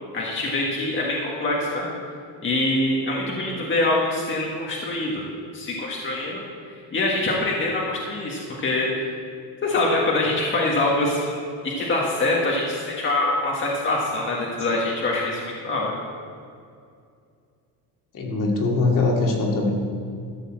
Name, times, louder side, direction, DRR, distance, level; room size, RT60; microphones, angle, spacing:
voice 1, 0.1-1.9 2.4-5.2 5.5-6.4 6.9-9.1 9.6-11.4 11.6-15.9, left 2 dB, 30° left, -3 dB, 1.6 m, -24 dB
voice 2, 18.1-19.7, left 3 dB, 50° left, -1 dB, 2.3 m, -22 dB
13.5 x 5.5 x 7.5 m, 2.4 s
cardioid pair, 135°, 40 cm